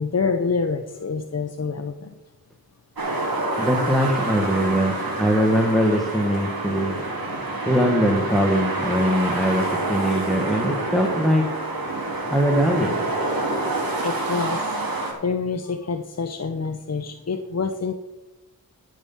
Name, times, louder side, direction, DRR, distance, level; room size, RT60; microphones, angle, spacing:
voice 1, 0.0-2.2 14.0-14.7 15.2-17.9, left 5 dB, 45° left, 6 dB, 0.8 m, -27 dB
sound 1, 3.0-15.1, right 2 dB, 70° right, 3.5 m, -27 dB
voice 2, 3.6-7.0 7.6-11.5 12.3-13.0, equal, ahead, 1 dB, 1.6 m, -21 dB
15.0 x 6.4 x 5.5 m, 1.0 s
wide cardioid pair, 85°, 37 cm